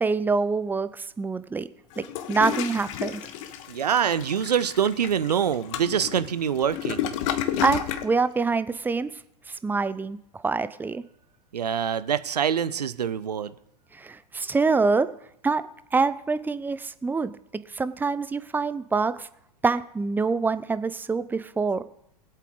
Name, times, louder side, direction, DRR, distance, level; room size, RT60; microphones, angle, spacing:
voice 1, 0.0-1.7 2.3-3.2 7.6-9.1 9.5-10.2 10.4-11.0 13.9-15.1 15.4-15.6 15.9-19.3 19.6-21.8, right 4 dB, 10° right, 14 dB, 0.6 m, -25 dB
Toilet flush, 1.9-8.1, left 10 dB, 50° left, 1.2 m, -31 dB
voice 2, 3.7-7.1 11.5-13.5, right 8 dB, 75° right, 16 dB, 0.7 m, -25 dB
20.5 x 8.2 x 3.9 m, 0.75 s
figure-of-eight pair, 95°, 21 cm